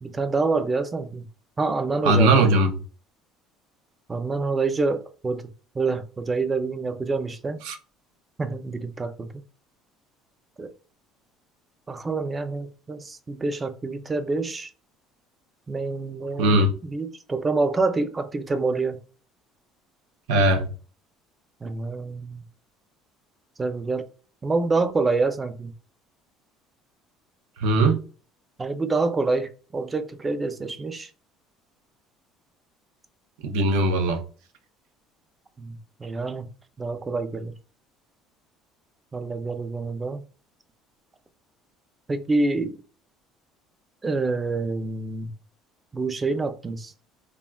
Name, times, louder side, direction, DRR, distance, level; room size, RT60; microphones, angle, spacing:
voice 1, 0.0-1.3 1.6-2.4 4.1-5.5 5.7-7.6 8.4-9.4 10.6-10.7 11.9-14.7 15.7-19.0 21.6-22.4 23.6-24.0 24.4-25.7 28.6-31.1 35.6-36.5 36.8-37.5 39.1-40.2 42.1-42.8 44.0-45.3 45.9-46.9, right 3 dB, 20° right, 0.3 m, -27 dB
voice 2, 2.0-2.7 7.6-7.8 16.4-16.7 20.3-20.7 27.6-28.0 33.4-34.2, right 2 dB, 80° right, 0.5 m, -19 dB
3.4 x 2.2 x 2.2 m
cardioid pair, 120°, 0 cm